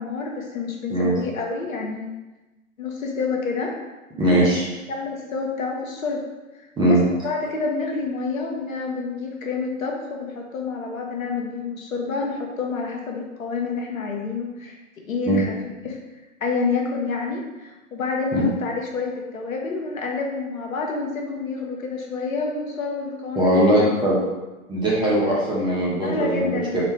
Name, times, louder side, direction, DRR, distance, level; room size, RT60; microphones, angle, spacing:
voice 1, 0.0-2.1 2.8-3.7 4.4-4.5 4.9-6.3 6.9-7.0 7.2-14.8 15.0-15.6 15.8-16.0 16.4-24.0 26.0-26.8, left 4 dB, 75° left, 1 dB, 1.0 m, -28 dB
voice 2, 4.2-4.6 6.8-7.0 15.3-15.4 18.3-18.5 23.4-24.2 24.7-26.8, right 1 dB, 10° right, -6 dB, 0.9 m, -20 dB
4.0 x 2.7 x 4.3 m, 1.1 s
figure-of-eight pair, 120°, 41 cm